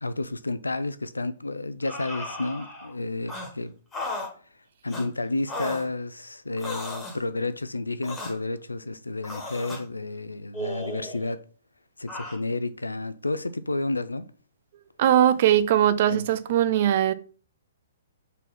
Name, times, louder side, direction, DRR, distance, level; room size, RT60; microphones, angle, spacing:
voice 1, 0.0-3.7 4.8-11.4 12.0-14.3 16.1-16.3, left 2 dB, 85° left, 0.5 m, -31 dB
sound 1, 1.8-2.9 3.3-3.5 3.9-4.3 4.9-5.1 5.5-5.9 6.6-7.2 8.0-8.3 9.2-9.8 10.5-11.3 12.1-12.4, left 1 dB, 15° left, 1.6 m, -35 dB
voice 2, 15.0-17.1, right 11 dB, 45° right, 0.6 m, -20 dB
4.5 x 4.1 x 5.7 m
figure-of-eight pair, 120°, 0 cm